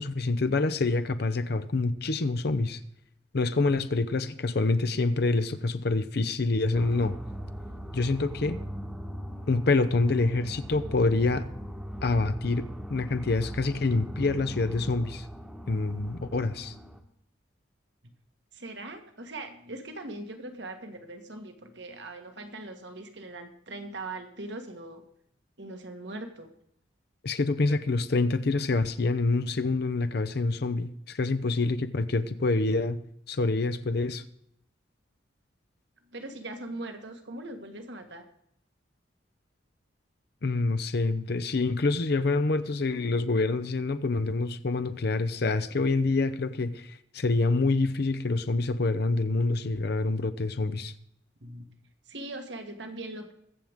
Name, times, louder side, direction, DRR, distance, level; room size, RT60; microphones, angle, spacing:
voice 1, 0.0-2.8 3.3-7.2 7.9-8.6 9.5-11.5 12.0-15.2 15.7-16.7 27.2-33.0 33.3-34.2 40.4-50.9, left 3 dB, 55° left, 0.6 m, -26 dB
sound 1, 6.7-17.0, equal, 5° right, 1.2 m, -40 dB
voice 2, 18.5-25.0 25.6-26.5 36.1-38.2 51.4-51.8 52.0-53.3, right 2 dB, 65° right, 1.6 m, -40 dB
22.0 x 7.6 x 3.6 m
head